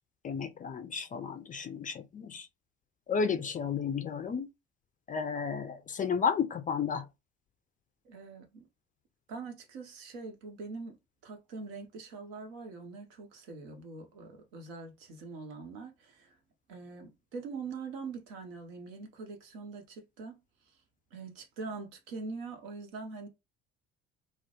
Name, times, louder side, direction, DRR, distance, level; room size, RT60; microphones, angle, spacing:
voice 1, 0.2-2.5 3.1-4.5 5.1-7.0, left 6 dB, 25° left, 0.4 m, -32 dB
voice 2, 8.0-8.7 9.3-11.0 11.2-16.4 16.7-20.4 21.1-23.3, right 4 dB, 70° right, 0.8 m, -43 dB
2.1 x 2.0 x 2.8 m
figure-of-eight pair, 50°, 31 cm